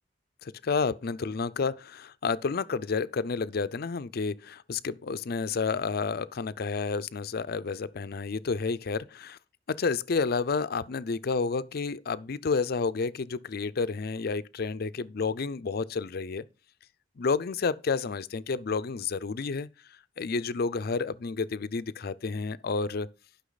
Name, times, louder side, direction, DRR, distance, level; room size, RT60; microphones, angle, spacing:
voice 1, 0.4-9.4 9.7-16.4 17.2-19.7 20.2-23.1, left 4 dB, 55° left, 0.5 m, -30 dB
11.5 x 5.8 x 4.0 m
head